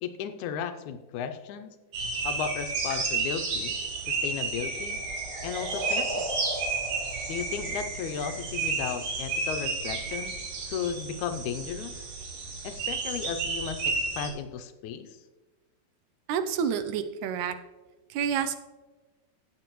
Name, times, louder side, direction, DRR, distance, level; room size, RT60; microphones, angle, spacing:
voice 1, 0.0-1.7 2.2-3.7 4.1-5.0 5.4-6.4 7.3-10.4 10.7-11.9 12.6-15.2, left 7 dB, 80° left, 8 dB, 1.9 m, -35 dB
sound 1, 1.9-14.3, right 4 dB, 65° right, 2.6 m, -32 dB
sound 2, 3.6-8.4, right 1 dB, 30° right, 2.3 m, -39 dB
voice 2, 16.3-17.5 18.1-18.6, right 7 dB, 80° right, 9 dB, 2.0 m, -28 dB
16.0 x 7.2 x 3.0 m, 1.2 s
omnidirectional pair, 3.5 m